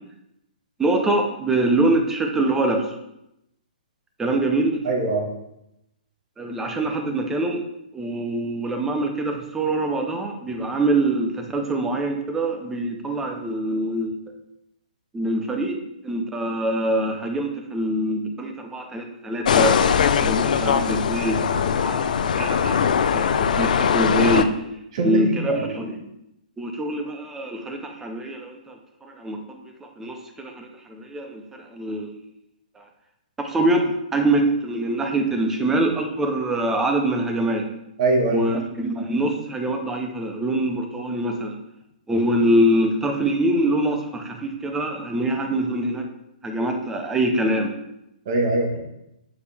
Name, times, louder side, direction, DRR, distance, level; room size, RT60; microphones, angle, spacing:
voice 1, 0.8-3.0 4.2-4.9 6.4-7.6 7.9-14.2 15.1-22.9 23.1-24.5 25.0-26.1 26.6-32.1 32.8-32.9 33.4-37.7 38.3-41.6 42.1-46.1 46.4-47.7, right 1 dB, 5° right, 4 dB, 0.6 m, -24 dB
voice 2, 4.8-5.2 24.9-25.7 38.0-38.4 48.2-48.8, right 2 dB, 40° right, 1 dB, 1.5 m, -22 dB
sound 1, 19.4-24.4, left 7 dB, 60° left, 0.4 m, -21 dB
6.9 x 4.9 x 3.4 m, 0.84 s
hypercardioid pair, 170°, 5 cm